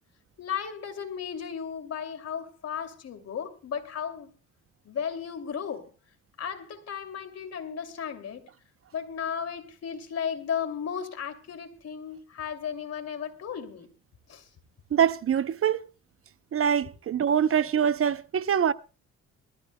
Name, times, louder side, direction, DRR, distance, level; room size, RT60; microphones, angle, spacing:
voice 1, 0.4-4.3 4.8-5.9 6.4-8.5 8.9-13.9 14.3-14.5, left 7 dB, 55° left, 2.7 m, -35 dB
voice 2, 14.9-15.9 16.5-18.7, right 8 dB, 50° right, 0.7 m, -24 dB
24.5 x 14.0 x 2.2 m
cardioid pair, 90°, 30 cm